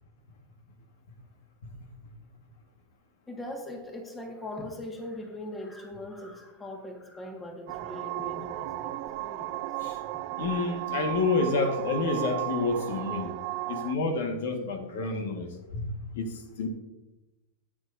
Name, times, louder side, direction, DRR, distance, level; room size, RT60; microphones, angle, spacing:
voice 1, 3.3-9.6, left 1 dB, 15° left, 3 dB, 1.7 m, -40 dB
sound 1, 7.7-14.0, right 17 dB, 50° right, 0.5 m, -35 dB
voice 2, 10.4-13.3 13.7-16.7, left 3 dB, 80° left, 5 dB, 1.6 m, -29 dB
14.0 x 9.4 x 2.7 m, 0.99 s
supercardioid pair, 140°, 0 cm